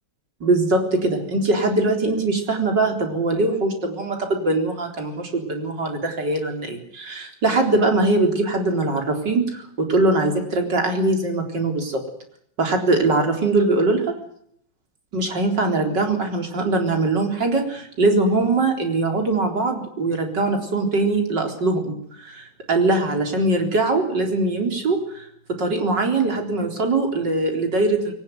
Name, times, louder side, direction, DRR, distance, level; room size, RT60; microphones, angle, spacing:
voice 1, 0.4-12.0 12.6-14.2 15.1-28.1, right 2 dB, 70° right, 4 dB, 4.7 m, -22 dB
22.0 x 19.0 x 9.5 m, 0.67 s
omnidirectional pair, 2.0 m